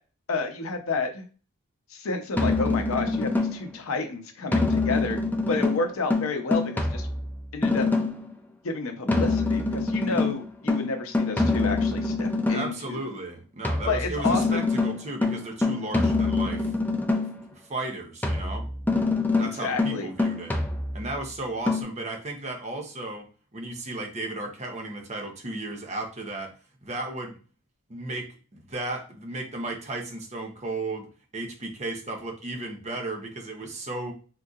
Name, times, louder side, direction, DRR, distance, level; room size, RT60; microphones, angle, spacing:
voice 1, 0.3-1.2 1.9-5.2 5.5-7.1 7.5-7.9 8.6-13.0 13.9-14.6 19.4-20.1, left 3 dB, 70° left, 5 dB, 0.7 m, -30 dB
sound 1, 2.3-3.8 4.5-8.3 9.1-12.8 13.6-17.5 18.2-21.2 21.7-21.8, left 3 dB, 10° left, 0.4 m, -25 dB
voice 2, 12.5-16.7 17.5-18.7 19.3-20.5 20.9-23.3 23.5-26.6 26.8-27.4 27.9-31.1 31.3-34.1, right 2 dB, 30° right, 3 dB, 0.7 m, -34 dB
3.7 x 2.7 x 2.4 m, 0.37 s
head